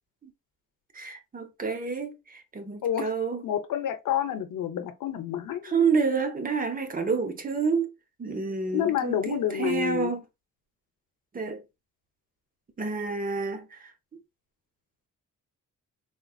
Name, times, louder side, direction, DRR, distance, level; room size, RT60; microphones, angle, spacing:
voice 1, 0.9-3.4 5.6-7.9 8.2-10.2 11.3-11.6 12.8-13.9, right 5 dB, 30° right, 0.6 m, -29 dB
voice 2, 3.4-5.7 8.7-10.1, left 10 dB, 90° left, 0.7 m, -28 dB
3.7 x 2.5 x 2.3 m
wide cardioid pair, 160°, 31 cm